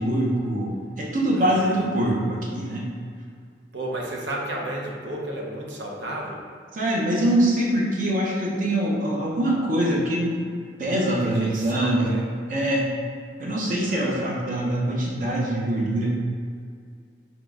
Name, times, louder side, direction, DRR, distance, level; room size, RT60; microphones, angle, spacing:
voice 1, 0.0-2.9 6.7-10.4 10.8-12.1 12.5-12.9 13.4-16.1, right 1 dB, 50° right, -3 dB, 0.8 m, -23 dB
voice 2, 1.4-1.8 3.7-6.5 11.2-12.2 13.9-14.4, right 1 dB, 85° right, -2 dB, 0.8 m, -33 dB
3.8 x 3.0 x 3.5 m, 2.2 s
head